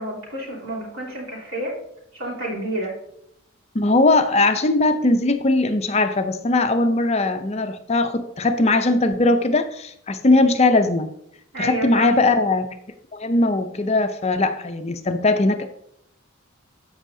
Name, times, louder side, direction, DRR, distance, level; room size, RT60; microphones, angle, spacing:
voice 1, 0.0-1.7 2.1-2.9 11.5-12.1, right 1 dB, 85° right, -5 dB, 3.3 m, -29 dB
voice 2, 3.7-11.1 11.6-12.7 13.1-15.7, left 2 dB, 30° left, 8 dB, 0.5 m, -19 dB
13.5 x 5.5 x 2.7 m, 0.76 s
head